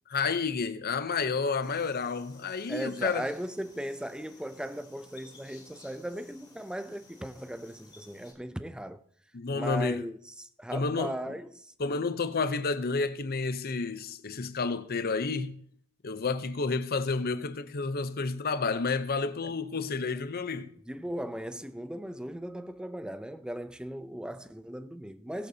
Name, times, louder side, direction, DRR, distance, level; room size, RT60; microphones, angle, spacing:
voice 1, 0.1-3.3 9.3-10.0 10.7-11.1 11.8-15.6 16.0-20.7, left 4 dB, 45° left, 0.6 m, -30 dB
sound 1, 1.6-8.3, left 3 dB, 20° left, 2.7 m, -55 dB
voice 2, 2.7-9.0 9.5-11.7 20.9-25.5, right 1 dB, 5° right, 0.4 m, -38 dB
19.5 x 8.2 x 2.8 m
head